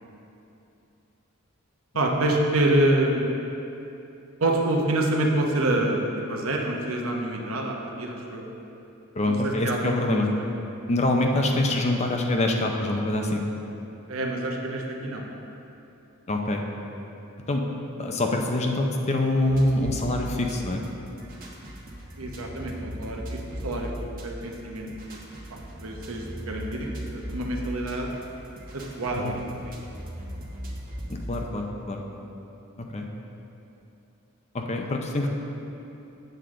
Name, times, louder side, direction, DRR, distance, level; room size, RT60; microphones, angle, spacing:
voice 1, 1.9-3.3 4.4-6.0 6.3-8.4 9.3-10.2 14.1-15.2 22.2-23.9 24.2-24.9 25.8-26.9 27.1-28.1 28.7-29.7, right 1 dB, 80° right, 0 dB, 1.0 m, -26 dB
voice 2, 9.1-10.3 10.9-13.4 16.3-16.6 17.5-17.6 18.0-20.8 29.1-29.3 31.1-32.0 32.8-33.1 34.5-35.3, left 1 dB, 30° left, 2 dB, 0.6 m, -25 dB
sound 1, 19.4-31.5, equal, 45° right, 1.1 m, -38 dB
7.9 x 7.8 x 3.8 m, 2.9 s
head